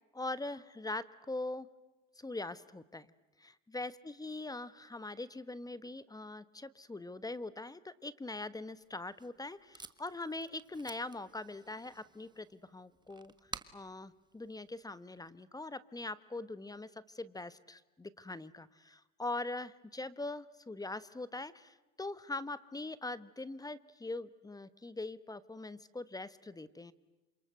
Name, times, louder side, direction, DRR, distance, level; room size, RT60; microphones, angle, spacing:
voice 1, 0.1-1.7 2.2-3.1 3.4-26.9, left 2 dB, 10° left, 16 dB, 1.2 m, -42 dB
Packing tape duct tape, 8.8-15.3, right 3 dB, 15° right, 1.5 m, -53 dB
28.0 x 26.5 x 7.7 m, 1.1 s
supercardioid pair, 100°, 32 cm